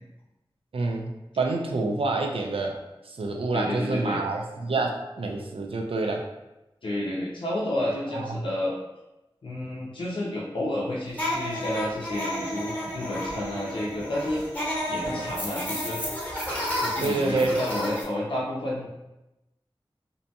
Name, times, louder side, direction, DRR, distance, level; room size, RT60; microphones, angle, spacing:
voice 1, 0.7-2.8 3.1-6.3 8.1-8.3 15.1-15.3 17.0-17.6, right 3 dB, 85° right, 2 dB, 0.4 m, -27 dB
voice 2, 3.5-4.2 6.8-8.8 9.4-14.5 14.9-16.0 16.8-18.9, left 1 dB, 65° left, -5 dB, 0.5 m, -30 dB
sound 1, 11.1-18.0, equal, 15° left, 0.8 m, -31 dB
2.6 x 2.2 x 2.6 m, 0.97 s
wide cardioid pair, 50°, 9 cm